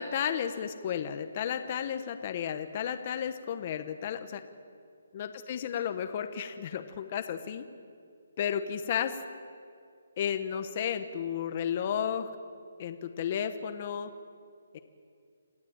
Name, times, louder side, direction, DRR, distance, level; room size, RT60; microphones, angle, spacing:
voice 1, 0.0-4.4 5.1-7.6 8.4-9.2 10.2-12.3 12.8-14.1 14.7-14.8, left 8 dB, 30° left, 8 dB, 1.1 m, -33 dB
28.0 x 16.0 x 8.9 m, 2.3 s
hypercardioid pair, 170°, 0 cm